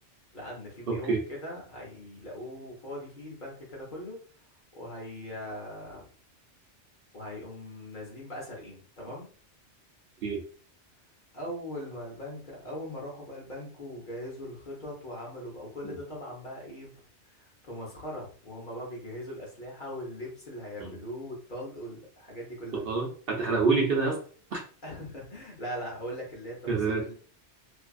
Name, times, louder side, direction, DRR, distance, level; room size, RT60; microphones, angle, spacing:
voice 1, 0.3-4.2 4.7-6.1 7.1-9.3 11.3-16.9 17.3-22.8 24.8-27.1, equal, 45° left, -2 dB, 1.0 m, -40 dB
voice 2, 0.9-1.2 10.2-10.4 15.8-16.0 20.8-20.9 22.7-24.2 24.5-24.6 26.7-27.1, right 4 dB, 60° right, 0 dB, 0.7 m, -27 dB
2.6 x 2.3 x 2.3 m, 0.42 s
omnidirectional pair, 1.2 m